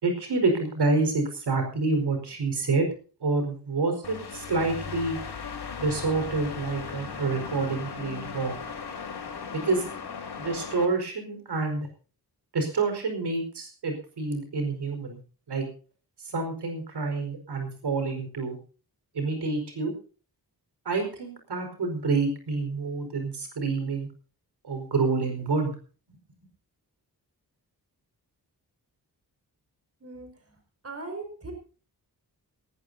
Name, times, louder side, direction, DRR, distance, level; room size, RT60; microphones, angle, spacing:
voice 1, 0.0-2.9 3.2-5.2 5.8-8.6 9.5-9.9 10.4-11.9 12.5-15.2 15.5-15.7 16.2-18.6 19.1-19.9 20.8-24.1 24.6-25.7, right 3 dB, 90° right, 5 dB, 5.0 m, -28 dB
sound 1, 4.0-10.9, left 6 dB, 75° left, 4.2 m, -37 dB
voice 2, 30.8-31.5, right 3 dB, 40° right, 4 dB, 5.4 m, -38 dB
18.5 x 17.5 x 2.8 m, 0.38 s
wide cardioid pair, 155°, 39 cm